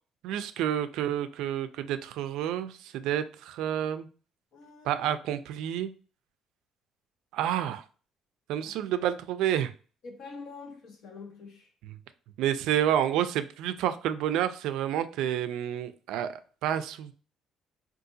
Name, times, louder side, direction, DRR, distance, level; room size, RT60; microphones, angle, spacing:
voice 1, 0.2-4.1 4.8-5.9 7.3-7.8 8.5-9.7 11.8-12.0 12.4-17.1, right 10 dB, 90° right, 0.3 m, -29 dB
voice 2, 4.5-5.1 8.6-8.7 10.0-11.7, left 4 dB, 60° left, 0.9 m, -45 dB
3.7 x 2.4 x 2.6 m
cardioid pair, 140°, 0 cm